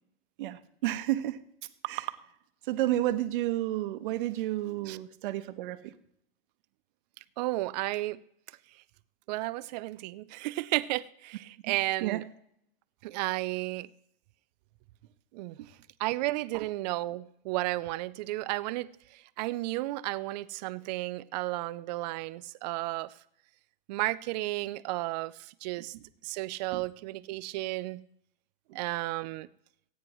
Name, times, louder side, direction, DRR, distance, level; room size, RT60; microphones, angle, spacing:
voice 1, 0.4-1.4 1.8-2.1 2.6-5.9 11.6-11.7 12.0-12.2 15.6-15.7 16.5-16.6 25.8-26.0 26.7-26.8 28.7-28.8, right 14 dB, 60° right, 1.1 m, -31 dB
voice 2, 7.4-8.2 9.3-12.2 13.0-13.9 15.3-15.6 16.0-23.1 23.9-25.9 26.2-28.0 28.7-29.5, right 18 dB, 45° right, 0.5 m, -33 dB
27.0 x 9.4 x 3.1 m
hypercardioid pair, 135°, 29 cm